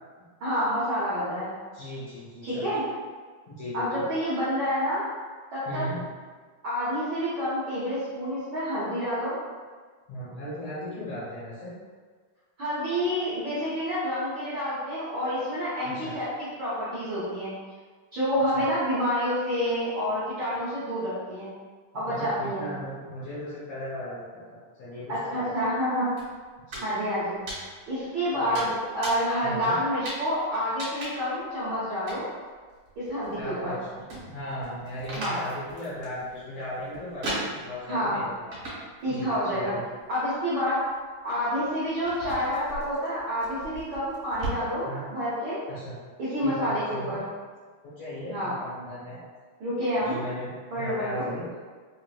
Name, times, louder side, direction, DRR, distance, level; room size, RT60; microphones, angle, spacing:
voice 1, 0.4-1.5 2.4-2.8 3.7-5.0 5.5-5.9 6.6-9.4 12.6-16.2 16.6-17.5 18.1-21.5 21.9-22.7 25.1-26.1 26.8-27.4 27.9-32.3 33.0-33.8 35.1-35.4 37.9-38.2 39.0-39.7 40.1-40.8 41.2-45.6 46.2-47.2 48.3-48.5 49.6-50.2 50.7-51.3, equal, 75° right, -12 dB, 1.1 m, -28 dB
voice 2, 1.7-2.7 3.5-4.1 5.7-6.0 10.1-11.7 15.8-16.2 18.5-18.7 22.1-25.2 26.7-26.8 28.3-28.7 29.4-29.7 33.4-33.7 34.2-38.5 39.1-39.8 44.8-45.0 45.7-46.0 46.4-47.2 48.0-49.2 50.1-50.5 50.7-51.5, equal, 60° left, -10 dB, 1.9 m, -37 dB
sound 1, 26.2-26.9 27.2-28.0 28.6-29.4 30.0-30.3 30.8-31.4 32.1-32.2 32.7-33.7 34.0-37.9 38.5-39.0 39.3-40.0 40.6-44.5, right 1 dB, 55° right, 2.4 m, -38 dB
5.8 x 2.6 x 2.5 m, 1.5 s
omnidirectional pair, 4.0 m